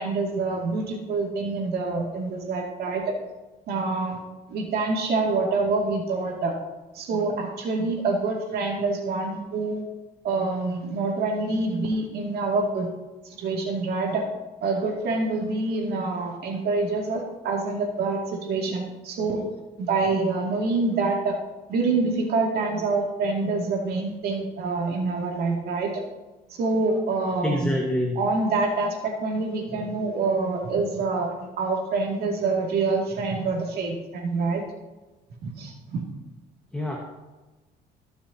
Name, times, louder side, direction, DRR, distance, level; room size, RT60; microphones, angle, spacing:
voice 1, 0.0-3.1 3.7-4.2 4.5-6.6 6.9-9.8 10.2-12.9 13.2-14.3 14.6-19.4 19.8-21.4 21.7-26.0 26.5-27.8 28.2-31.3 31.6-34.6 35.4-36.0, right 3 dB, 70° right, 0 dB, 2.4 m, -26 dB
voice 2, 27.4-28.2 36.7-37.0, left 1 dB, 5° left, -1 dB, 1.5 m, -25 dB
20.5 x 6.9 x 2.8 m, 1.2 s
cardioid pair, 110°, 17 cm